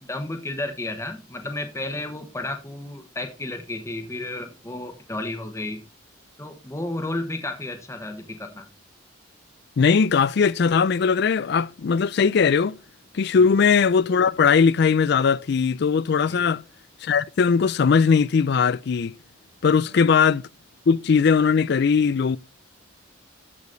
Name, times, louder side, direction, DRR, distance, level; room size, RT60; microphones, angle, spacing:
voice 1, 0.0-5.8 6.4-8.7 13.4-13.5 16.3-16.5, left 2 dB, 15° left, 1.1 m, -32 dB
voice 2, 9.8-12.8 13.1-16.6 17.0-19.2 19.6-20.4 20.9-22.4, left 5 dB, 55° left, 0.4 m, -19 dB
13.5 x 5.1 x 3.9 m
head